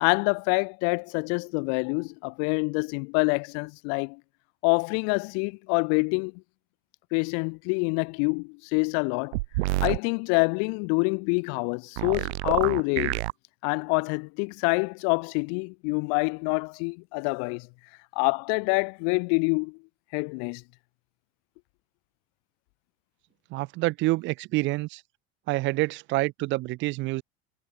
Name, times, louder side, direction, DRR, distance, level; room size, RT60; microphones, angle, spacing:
voice 1, 0.0-4.2 4.6-6.3 7.1-9.4 9.8-13.2 13.6-17.7 18.2-19.8 20.1-20.6, left 40 dB or more, 50° left, 0.6 m, -26 dB
sound 1, 9.3-10.0 12.0-13.3, right 22 dB, 85° right, 1.0 m, -27 dB
voice 2, 23.5-25.0 25.5-27.2, right 20 dB, 35° right, 0.5 m, -27 dB
cardioid pair, 160°, 33 cm